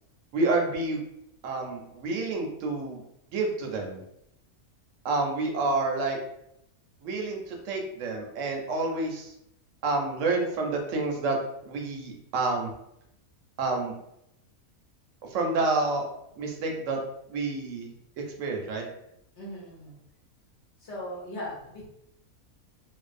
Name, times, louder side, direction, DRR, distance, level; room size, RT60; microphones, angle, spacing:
voice 1, 0.3-1.0 1.4-3.0 3.3-4.0 5.0-6.2 7.0-9.3 9.8-11.4 11.6-12.7 13.6-13.9 15.3-16.0 16.4-17.0 17.3-17.9 18.4-18.9, right 3 dB, 70° right, 1 dB, 0.8 m, -28 dB
voice 2, 19.4-20.0 20.8-21.9, equal, 60° left, -5 dB, 0.9 m, -38 dB
2.5 x 2.0 x 2.4 m, 0.79 s
omnidirectional pair, 1.5 m